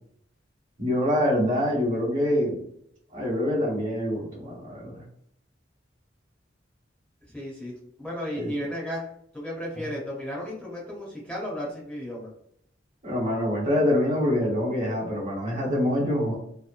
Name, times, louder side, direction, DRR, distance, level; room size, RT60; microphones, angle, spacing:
voice 1, 0.8-2.6 3.1-5.0 8.4-8.5 13.0-16.4, left 1 dB, 45° right, -4 dB, 1.1 m, -25 dB
voice 2, 7.3-7.7 8.0-9.1 9.3-12.3, equal, 5° left, -5 dB, 0.7 m, -34 dB
2.8 x 2.0 x 2.4 m, 0.70 s
head